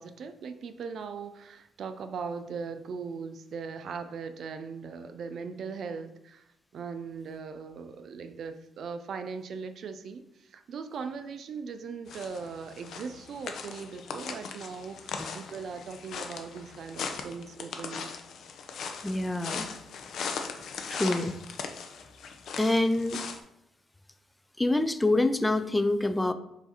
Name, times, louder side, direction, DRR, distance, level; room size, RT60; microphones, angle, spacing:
voice 1, 0.0-6.5 6.7-18.1, right 5 dB, 60° right, 9 dB, 0.4 m, -39 dB
sound 1, 12.1-23.4, left 5 dB, 70° left, 0.5 m, -39 dB
voice 2, 19.0-19.7 20.9-21.4 22.6-23.2 24.6-26.3, left 2 dB, 10° left, 10 dB, 0.3 m, -26 dB
4.7 x 2.6 x 4.1 m, 0.82 s
cardioid pair, 90°, 0 cm